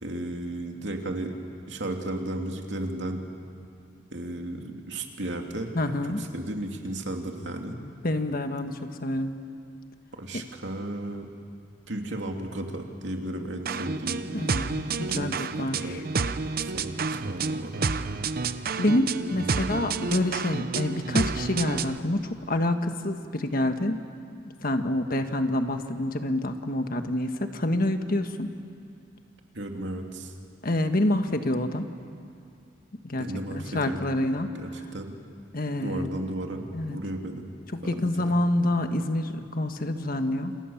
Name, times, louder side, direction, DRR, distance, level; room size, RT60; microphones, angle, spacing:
voice 1, 0.0-1.4 1.7-3.2 4.1-5.7 6.2-7.8 10.1-11.3 11.9-14.3 15.1-16.0 16.6-18.1 19.3-19.7 29.5-30.3 33.2-34.0 34.6-35.2 35.8-37.5 37.8-38.3, right 1 dB, 70° right, 3 dB, 2.8 m, -34 dB
voice 2, 5.7-6.2 7.8-9.4 14.3-16.0 18.8-24.0 24.6-28.5 30.6-31.9 33.0-34.5 35.5-36.1 36.7-37.0 37.7-40.6, left 1 dB, 50° left, 7 dB, 1.5 m, -27 dB
sound 1, 13.7-22.0, right 4 dB, 55° right, 0.8 m, -30 dB
29.0 x 28.0 x 7.2 m, 2.4 s
head